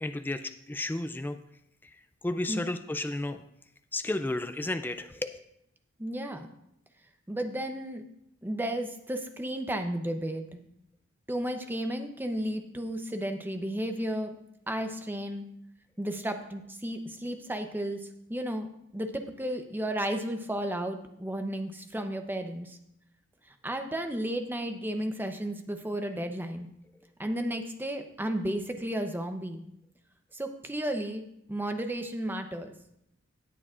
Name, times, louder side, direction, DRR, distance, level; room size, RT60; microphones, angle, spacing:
voice 1, 0.0-1.4 1.8-3.4 3.9-5.4, left 2 dB, 10° left, 9 dB, 0.3 m, -33 dB
voice 2, 6.0-6.5 7.3-8.0 8.4-10.6 11.3-14.4 14.7-15.5 16.0-18.7 18.9-22.8 23.6-26.7 27.2-29.6 30.3-31.2 31.5-32.7, right 1 dB, 10° right, 6 dB, 0.7 m, -33 dB
18.5 x 6.9 x 2.5 m, 0.79 s
head